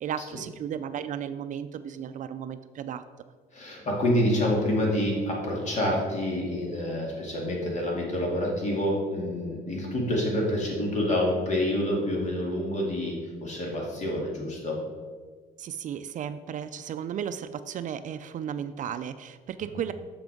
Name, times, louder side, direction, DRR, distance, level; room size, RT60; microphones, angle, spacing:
voice 1, 0.0-3.0 15.6-19.9, right 8 dB, 50° right, 11 dB, 0.4 m, -34 dB
voice 2, 3.5-14.8, left 1 dB, 45° left, -1 dB, 2.4 m, -27 dB
6.7 x 6.0 x 5.1 m, 1.5 s
cardioid pair, 110°, 17 cm